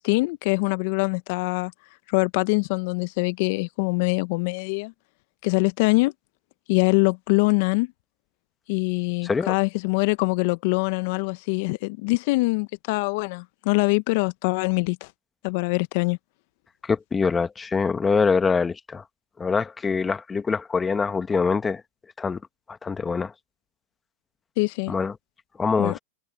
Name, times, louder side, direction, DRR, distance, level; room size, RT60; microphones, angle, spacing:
voice 1, 0.0-1.7 2.1-4.9 5.4-6.1 6.7-7.9 8.7-15.1 15.4-16.2 24.6-24.9 25.8-26.0, left 28 dB, 55° left, 0.8 m, -23 dB
voice 2, 9.2-9.5 16.8-19.0 19.4-21.8 22.2-22.4 22.8-23.3 24.9-25.1 25.6-26.0, left 5 dB, 15° left, 1.3 m, -24 dB
hypercardioid pair, 110°, 0 cm